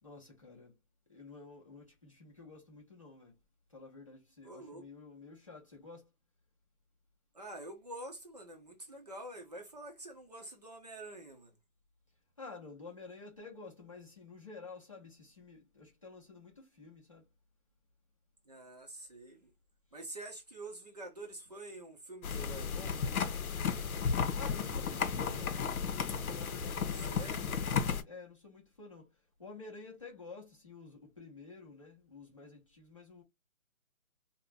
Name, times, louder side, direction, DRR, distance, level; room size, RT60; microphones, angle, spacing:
voice 1, 0.0-0.7 1.1-3.4 3.7-6.1 12.4-17.2 24.3-25.8 26.3-29.1 29.4-33.2, left 4 dB, 25° left, 0.7 m, -51 dB
voice 2, 4.4-4.8 7.3-11.6 18.5-19.5 19.9-23.0 26.9-27.5, right 1 dB, 30° right, 0.7 m, -47 dB
sound 1, 22.2-28.0, left 6 dB, 75° left, 0.7 m, -34 dB
2.4 x 2.2 x 3.9 m
hypercardioid pair, 170°, 43 cm